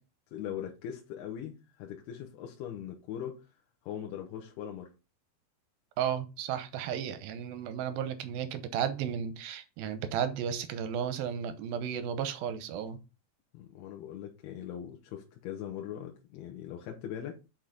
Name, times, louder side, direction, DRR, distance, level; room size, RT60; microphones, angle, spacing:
voice 1, 0.3-3.5 3.8-4.9 13.5-17.4, left 9 dB, 85° left, 2.9 m, -40 dB
voice 2, 6.0-13.0, right 8 dB, 80° right, 2.4 m, -34 dB
6.6 x 6.0 x 3.9 m
omnidirectional pair, 4.6 m